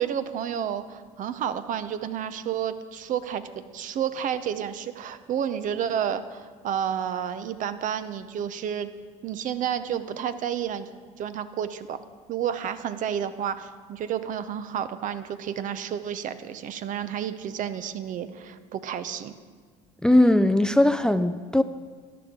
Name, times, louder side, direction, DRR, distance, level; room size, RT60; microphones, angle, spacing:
voice 1, 0.0-3.4 3.7-8.9 9.2-10.9 11.2-12.0 12.3-19.3, right 9 dB, 55° right, 11 dB, 0.7 m, -30 dB
voice 2, 20.0-21.6, left 1 dB, 5° left, 11 dB, 0.4 m, -19 dB
13.5 x 10.0 x 3.7 m, 1.6 s
supercardioid pair, 80°, 16 cm